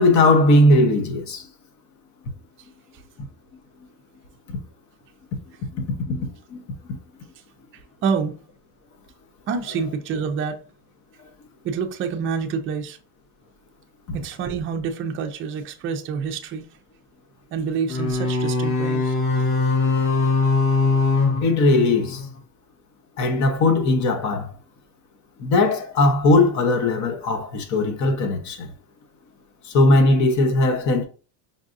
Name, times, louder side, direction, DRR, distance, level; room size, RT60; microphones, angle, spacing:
voice 1, 0.0-1.5 5.7-6.6 21.4-22.2 23.2-24.5 25.4-28.7 29.6-31.0, left 2 dB, 40° left, 0.9 m, -19 dB
voice 2, 8.0-8.4 9.5-10.6 11.6-13.0 14.1-16.7 17.5-19.2, right 6 dB, 30° right, 0.5 m, -27 dB
sound 1, 17.9-22.4, left 3 dB, 85° left, 1.5 m, -22 dB
5.4 x 2.5 x 2.5 m
cardioid pair, 145°, 44 cm